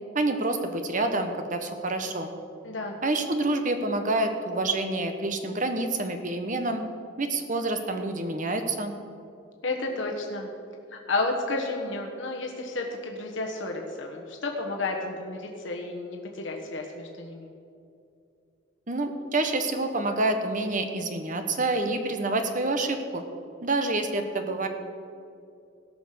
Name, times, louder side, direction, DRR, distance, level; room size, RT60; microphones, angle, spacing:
voice 1, 0.1-2.3 3.0-6.8 7.2-8.9 18.9-23.2 23.6-24.7, right 2 dB, 40° right, 6 dB, 1.1 m, -27 dB
voice 2, 2.6-3.0 9.6-10.5 10.9-17.5, left 2 dB, 75° left, 1 dB, 1.4 m, -32 dB
17.5 x 5.9 x 6.7 m, 2.5 s
head